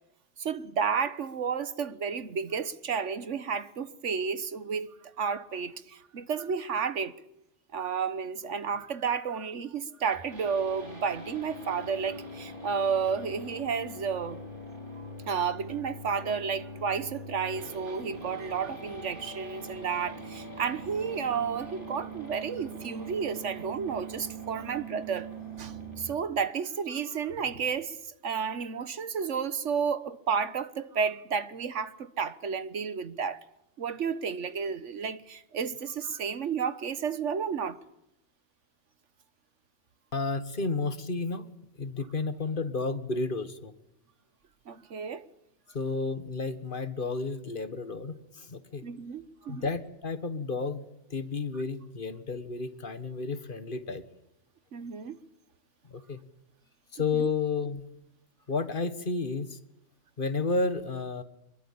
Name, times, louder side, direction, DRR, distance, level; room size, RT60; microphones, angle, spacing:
voice 1, 0.4-7.1 7.7-14.4 15.0-25.3 25.6-28.0 28.2-33.4 33.8-37.8 44.7-45.2 48.8-49.6 54.7-55.2 57.1-57.3, right 6 dB, 85° right, 1.5 m, -32 dB
sound 1, 10.1-26.1, right 1 dB, 45° right, 5.5 m, -42 dB
voice 2, 40.1-43.7 45.7-48.9 49.5-54.0 55.9-56.2 56.9-57.8 58.5-59.6 60.2-61.2, left 3 dB, 45° left, 1.7 m, -32 dB
25.0 x 22.0 x 8.7 m
omnidirectional pair, 1.2 m